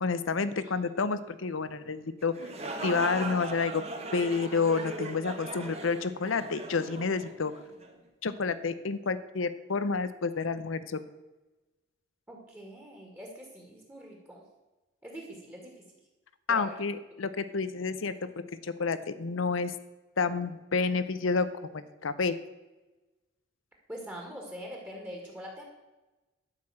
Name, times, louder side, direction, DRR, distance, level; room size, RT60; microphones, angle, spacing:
voice 1, 0.0-2.3 2.8-3.8 4.1-7.5 8.2-11.0 16.5-18.2 18.6-19.7 20.2-21.5 21.7-22.4, left 4 dB, 90° left, 13 dB, 0.7 m, -29 dB
sound 1, 2.2-7.9, right 2 dB, 30° right, 1.4 m, -39 dB
voice 2, 12.3-14.5 15.0-15.9 16.5-16.8 23.9-25.6, equal, 10° right, 0 dB, 2.0 m, -43 dB
12.0 x 5.8 x 7.6 m, 1.1 s
head